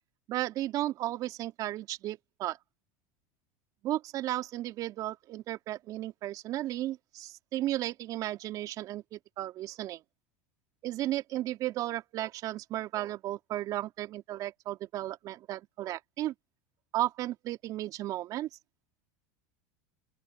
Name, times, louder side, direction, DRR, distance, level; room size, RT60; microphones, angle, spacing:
voice 1, 0.3-2.6 3.8-10.0 10.8-16.3 16.9-18.5, right 14 dB, 50° right, 2.6 m, -34 dB
open air
hypercardioid pair, 100°, 8 cm